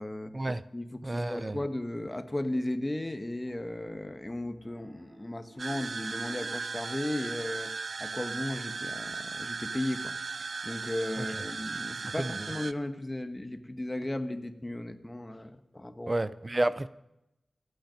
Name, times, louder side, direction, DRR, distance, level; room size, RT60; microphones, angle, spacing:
voice 1, 0.0-0.3 0.7-7.7 8.0-10.1 10.4-16.2, left 1 dB, 20° left, 8 dB, 1.4 m, -35 dB
voice 2, 1.0-1.6 11.2-11.3 12.2-12.5 16.1-16.9, right 2 dB, 30° right, 16 dB, 0.6 m, -30 dB
Piano, 3.5-6.9, right 2 dB, 50° right, 2.2 m, -54 dB
sound 1, 5.6-12.7, right 4 dB, 80° right, 0.5 m, -37 dB
28.0 x 9.4 x 5.3 m, 0.89 s
wide cardioid pair, 75°, 0 cm